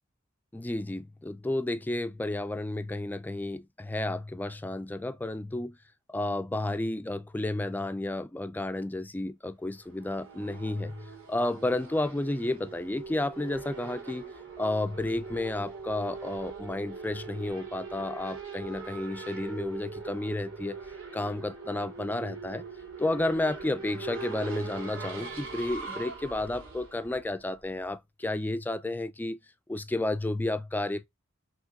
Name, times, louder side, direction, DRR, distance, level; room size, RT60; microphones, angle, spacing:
voice 1, 0.5-5.8 6.1-14.3 14.6-20.8 21.1-22.6 23.0-29.4 29.7-31.1, left 2 dB, 10° left, 0.3 m, -32 dB
Race car auto racing / Accelerating revving vroom, 9.7-27.9, right 4 dB, 75° right, 2.4 m, -42 dB
5.7 x 3.0 x 2.4 m
head